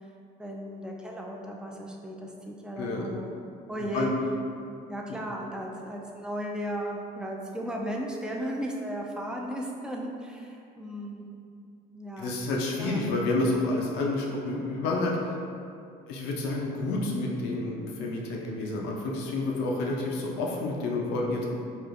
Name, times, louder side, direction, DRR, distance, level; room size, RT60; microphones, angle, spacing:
voice 1, 0.4-3.3 3.7-4.1 4.9-11.3 11.9-12.4 12.8-13.1, equal, 5° right, -1 dB, 0.4 m, -35 dB
voice 2, 2.8-3.1 3.9-4.1 12.2-15.2 16.1-21.5, left 2 dB, 90° left, -2 dB, 0.5 m, -29 dB
4.7 x 2.4 x 2.5 m, 2.5 s
cardioid pair, 110°, 17 cm